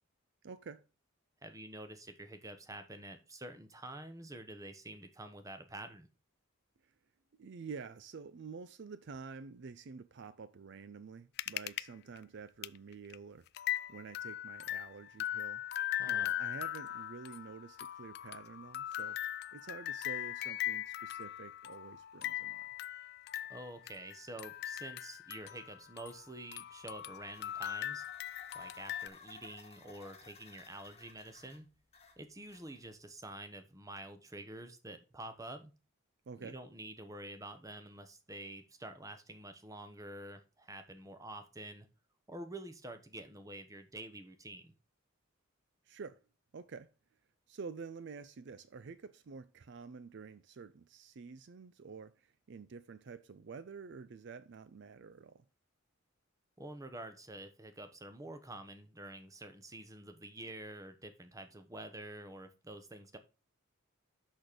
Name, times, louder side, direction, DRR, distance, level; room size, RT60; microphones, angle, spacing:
voice 1, 0.4-0.8 6.8-6.9 7.3-13.5 13.9-15.6 16.1-22.7 36.3-36.6 45.8-46.2 46.5-46.9 47.5-55.4, right 5 dB, 55° right, 0.4 m, -49 dB
voice 2, 1.4-6.1 16.0-16.3 23.5-28.0 28.5-31.7 32.2-35.7 36.4-41.9 42.3-44.7 56.6-63.2, right 1 dB, 15° right, 1.0 m, -48 dB
sound 1, 11.4-11.8 12.2-12.3 12.6-12.8 13.1-13.2 13.5-26.3 26.5-29.1, left 12 dB, 50° left, 0.3 m, -40 dB
sound 2, 26.9-33.0, left 4 dB, 30° left, 1.3 m, -59 dB
6.3 x 6.2 x 5.0 m
head